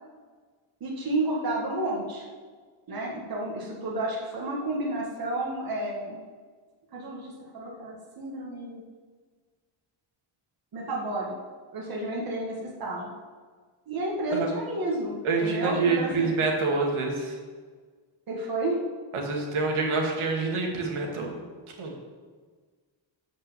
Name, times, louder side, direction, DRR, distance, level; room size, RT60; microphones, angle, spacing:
voice 1, 0.8-2.3 2.9-6.2 6.9-8.8 10.7-11.3 11.7-13.1 13.9-16.4 18.3-18.8, right 2 dB, 45° right, -3 dB, 1.9 m, -31 dB
voice 2, 15.2-17.3 19.1-21.3 21.8-21.9, right 3 dB, 80° right, 0 dB, 2.1 m, -27 dB
11.5 x 5.4 x 7.5 m, 1.5 s
wide cardioid pair, 180°, 49 cm